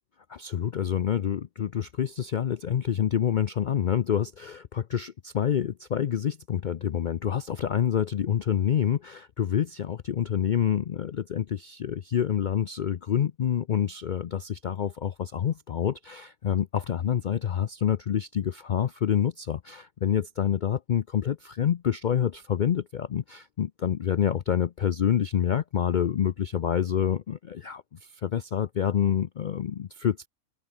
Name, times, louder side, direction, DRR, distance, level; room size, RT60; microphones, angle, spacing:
voice 1, 0.3-30.3, left 9 dB, 85° left, 0.4 m, -27 dB
omnidirectional pair, 1.5 m